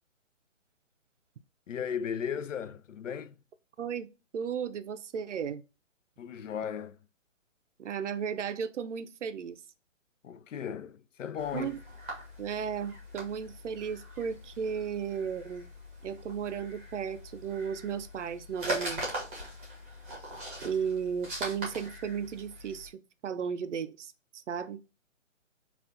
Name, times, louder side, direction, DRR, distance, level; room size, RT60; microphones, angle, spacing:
voice 1, 1.7-3.4 6.2-7.0 10.2-11.7, left 8 dB, 70° left, 0.6 m, -36 dB
voice 2, 3.8-4.1 4.3-5.6 7.8-9.6 11.5-11.8 12.4-15.7 16.0-19.0 20.6-24.8, right 7 dB, 65° right, 0.5 m, -35 dB
sound 1, 11.4-22.9, right 1 dB, 10° right, 0.8 m, -41 dB
5.5 x 2.4 x 2.5 m
hypercardioid pair, 170°, 39 cm